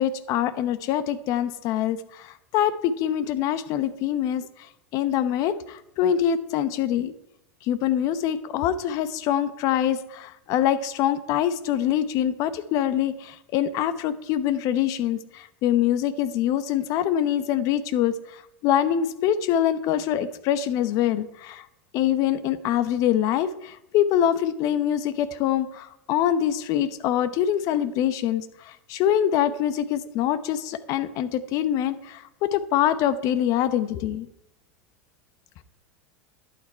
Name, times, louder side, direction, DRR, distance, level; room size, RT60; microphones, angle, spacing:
voice 1, 0.0-4.5 4.9-7.1 7.6-21.7 21.9-34.3, left 10 dB, 55° left, 13 dB, 0.9 m, -24 dB
11.5 x 8.8 x 4.5 m, 0.82 s
hypercardioid pair, 95°, 7 cm